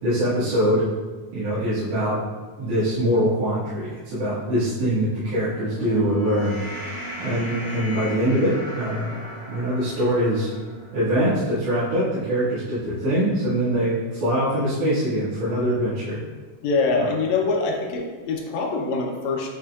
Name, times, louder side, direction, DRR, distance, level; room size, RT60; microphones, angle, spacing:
voice 1, 0.0-0.8 1.3-2.2 2.6-6.6 7.2-9.1 9.5-10.5 10.9-16.2, equal, 75° right, -15 dB, 3.6 m, -23 dB
sound 1, 5.2-11.7, equal, 50° right, 2.4 m, -37 dB
voice 2, 16.6-19.5, left 4 dB, 70° left, 1 dB, 1.9 m, -24 dB
9.6 x 5.4 x 2.4 m, 1.3 s
omnidirectional pair, 3.7 m